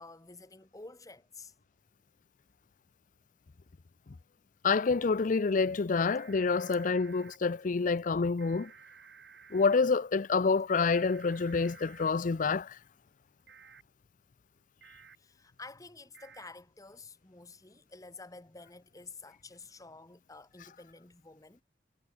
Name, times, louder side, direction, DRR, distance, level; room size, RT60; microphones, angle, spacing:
voice 1, 0.0-1.5 15.2-21.6, left 3 dB, 20° left, 1.3 m, -50 dB
voice 2, 4.6-8.7 9.5-12.8, left 4 dB, 45° left, 0.5 m, -27 dB
sound 1, 6.0-7.4 8.4-9.7 10.7-12.1 13.5-13.8 14.8-15.2 16.1-16.5, right 6 dB, 65° right, 2.9 m, -54 dB
head